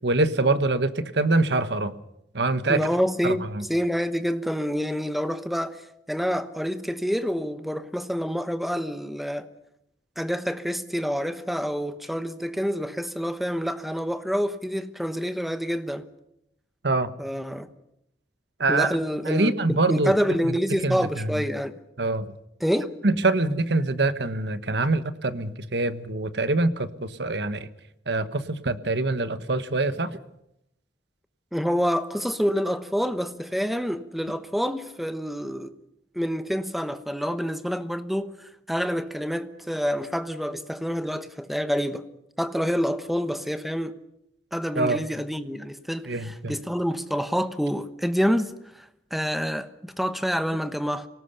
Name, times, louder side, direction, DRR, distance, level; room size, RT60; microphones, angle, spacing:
voice 1, 0.0-1.9 2.3-2.9 3.2-3.6 16.8-17.1 18.6-19.0 19.3-20.1 20.4-20.6 20.8-21.4 22.0-22.3 23.0-27.7 28.1-30.2 44.8-45.0 46.1-46.6, right 2 dB, 65° right, 1.3 m, -24 dB
voice 2, 2.7-9.5 10.2-16.1 17.2-17.7 18.7-19.5 19.9-21.8 22.6-22.9 31.5-35.7 36.1-42.1 42.4-44.0 44.5-51.1, equal, ahead, 1.1 m, -27 dB
25.5 x 18.5 x 6.9 m
head